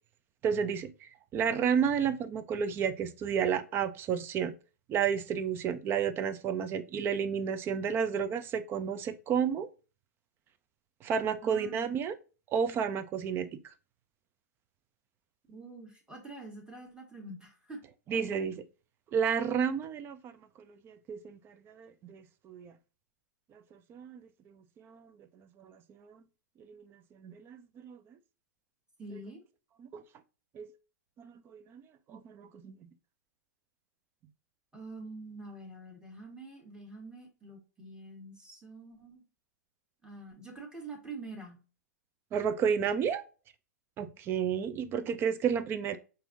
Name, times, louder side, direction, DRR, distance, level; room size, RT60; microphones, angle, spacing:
voice 1, 0.4-4.5 4.9-9.7 11.0-12.1 12.5-13.7 18.1-18.6 19.1-20.3 20.7-22.7 23.9-24.2 24.8-25.1 25.6-26.2 26.7-28.0 29.9-30.0 30.5-30.7 31.2-31.8 32.1-32.8 42.3-43.2 44.0-46.0, right 7 dB, 25° right, 0.4 m, -31 dB
voice 2, 11.4-11.9 15.5-17.8 29.0-29.4 34.7-39.2 40.0-41.6, right 2 dB, 10° right, 1.3 m, -46 dB
5.5 x 2.6 x 2.5 m
figure-of-eight pair, 110°, 9 cm